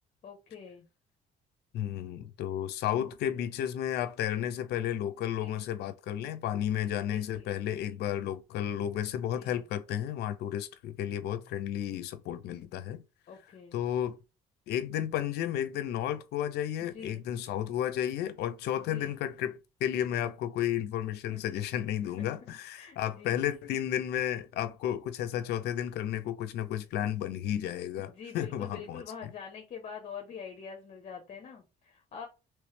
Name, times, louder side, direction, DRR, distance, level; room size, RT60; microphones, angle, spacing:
voice 1, 0.2-0.8 5.4-5.6 7.1-7.5 9.3-9.6 13.3-13.8 16.8-17.2 18.8-19.1 21.3-21.4 22.2-22.3 22.7-23.5 28.0-32.3, left 6 dB, 45° left, 0.8 m, -45 dB
voice 2, 1.7-13.0 13.7-14.2 14.7-29.3, left 11 dB, 75° left, 0.5 m, -32 dB
3.1 x 3.1 x 3.2 m
cardioid pair, 110°, 17 cm